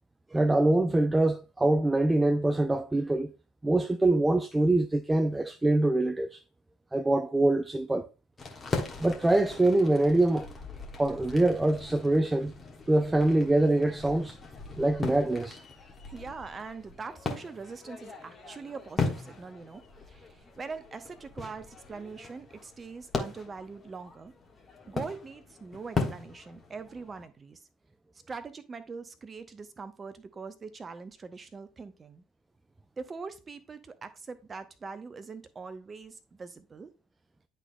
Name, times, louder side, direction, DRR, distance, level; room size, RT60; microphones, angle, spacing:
voice 1, 0.3-3.3 3.6-6.4 6.9-8.1 9.0-10.5 11.0-12.5 12.9-14.4 14.8-15.6, right 2 dB, 15° right, 0.4 m, -24 dB
sound 1, 8.4-27.3, left 3 dB, 30° left, 1.4 m, -38 dB
voice 2, 16.0-19.8 20.1-24.3 24.9-27.6 28.3-32.2 33.0-36.9, right 4 dB, 30° right, 0.9 m, -42 dB
11.0 x 3.9 x 2.2 m
figure-of-eight pair, 60°, 0 cm